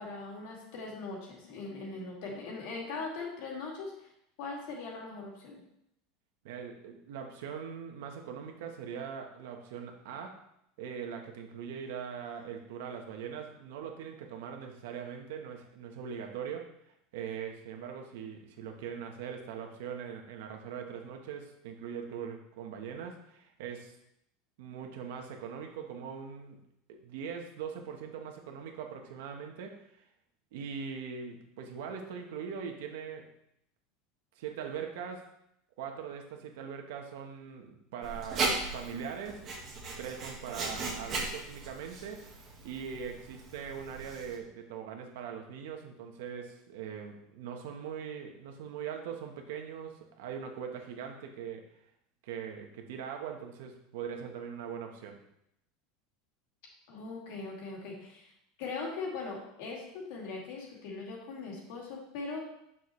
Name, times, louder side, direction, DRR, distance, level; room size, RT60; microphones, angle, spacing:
voice 1, 0.0-3.9 4.4-5.6 56.9-58.3 58.6-62.5, left 3 dB, 55° left, -2 dB, 2.4 m, -40 dB
voice 2, 6.4-10.4 10.8-16.7 17.1-23.9 24.6-26.6 26.9-29.8 30.5-33.3 34.4-35.3 35.8-39.5 40.0-42.3 42.6-51.6 52.2-55.2, right 7 dB, 70° right, 3 dB, 1.2 m, -41 dB
Writing, 38.0-44.4, right 3 dB, 25° right, 1.5 m, -37 dB
8.3 x 6.2 x 3.3 m, 0.78 s
supercardioid pair, 175°, 0 cm